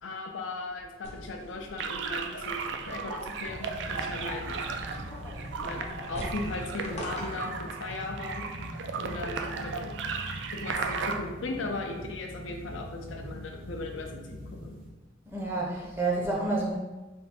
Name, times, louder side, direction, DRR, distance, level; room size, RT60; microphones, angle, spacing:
voice 1, 0.0-4.6 5.6-5.8 6.1-8.4 9.0-9.9 10.5-14.7, left 2 dB, 80° left, 2 dB, 0.5 m, -37 dB
sound 1, 1.0-7.6, left 1 dB, 35° left, 0.6 m, -44 dB
sound 2, 1.8-11.2, right 5 dB, 65° right, 0.3 m, -36 dB
sound 3, 3.4-14.9, equal, 45° right, 0.7 m, -42 dB
voice 2, 15.3-16.8, right 2 dB, 10° right, -4 dB, 0.6 m, -29 dB
3.5 x 2.2 x 4.2 m, 1.2 s
head